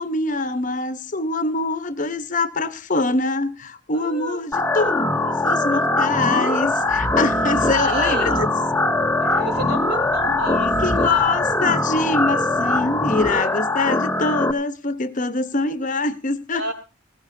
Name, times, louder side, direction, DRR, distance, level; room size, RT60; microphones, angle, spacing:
voice 1, 0.0-4.9 5.2-8.5 9.3-9.4 10.2-16.6, left 3 dB, 40° left, 0.8 m, -24 dB
voice 2, 3.9-4.4 7.7-8.5 9.2-11.4 16.5-16.7, right 2 dB, 60° right, 3.3 m, -30 dB
sound 1, 4.5-14.5, left 2 dB, 10° left, 0.7 m, -21 dB
sound 2, 6.6-13.3, equal, 20° right, 2.8 m, -35 dB
19.0 x 16.0 x 2.6 m
head